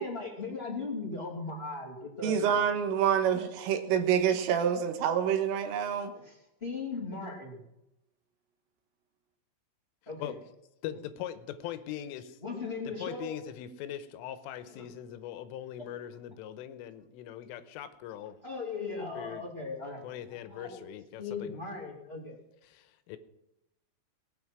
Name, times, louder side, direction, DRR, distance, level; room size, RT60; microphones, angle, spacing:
voice 1, 0.0-2.5 6.2-7.6 10.0-10.3 10.9-11.0 12.4-13.3 14.7-14.8 15.8-15.9 18.4-20.8 21.2-22.4, left 4 dB, 20° left, -1 dB, 1.6 m, -38 dB
voice 2, 2.2-6.1, right 8 dB, 80° right, 7 dB, 3.9 m, -27 dB
voice 3, 10.8-12.4 12.9-18.4 19.1-19.4 20.0-21.7 22.7-23.2, left 11 dB, 85° left, 12 dB, 3.4 m, -41 dB
19.0 x 9.4 x 6.1 m, 0.88 s
omnidirectional pair, 5.7 m